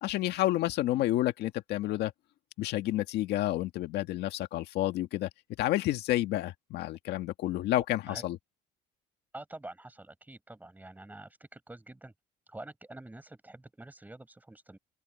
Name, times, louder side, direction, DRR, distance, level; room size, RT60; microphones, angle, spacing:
voice 1, 0.0-2.1 2.6-5.3 5.6-8.4, left 15 dB, 80° left, 1.8 m, -30 dB
voice 2, 7.8-8.2 9.3-12.1 12.5-14.8, right 2 dB, 10° right, 5.0 m, -47 dB
open air
cardioid pair, 110°, 17 cm